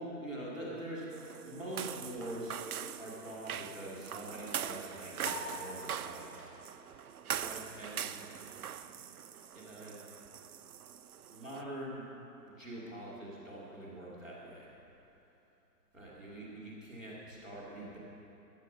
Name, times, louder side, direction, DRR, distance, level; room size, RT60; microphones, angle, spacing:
voice 1, 0.0-2.6 3.0-6.3 7.4-8.3 8.8-9.1 9.5-10.2 11.2-12.1 12.4-14.7 15.9-18.0, right 1 dB, ahead, -14 dB, 0.5 m, -44 dB
sound 1, 1.1-11.6, right 9 dB, 60° right, 0.6 m, -42 dB
sound 2, 5.2-12.0, left 3 dB, 40° left, 3.5 m, -50 dB
14.5 x 10.5 x 5.1 m, 3.0 s
hypercardioid pair, 145°, 50 cm